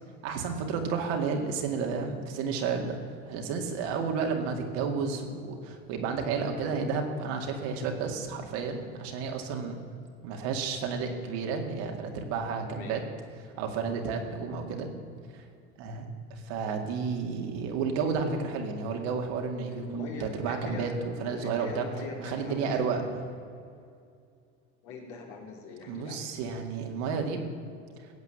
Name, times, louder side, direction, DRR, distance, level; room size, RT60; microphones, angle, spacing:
voice 1, 0.2-3.0 3.3-9.7 10.2-13.0 13.6-14.9 15.3-15.4 15.8-16.1 16.3-21.9 22.2-23.0 25.9-27.6, right 5 dB, 70° right, 3 dB, 2.3 m, -31 dB
voice 2, 12.7-13.1 19.7-20.9 21.4-23.0 24.8-26.3, left 3 dB, 60° left, 0 dB, 3.5 m, -42 dB
15.5 x 8.4 x 7.1 m, 2.3 s
supercardioid pair, 100°, 33 cm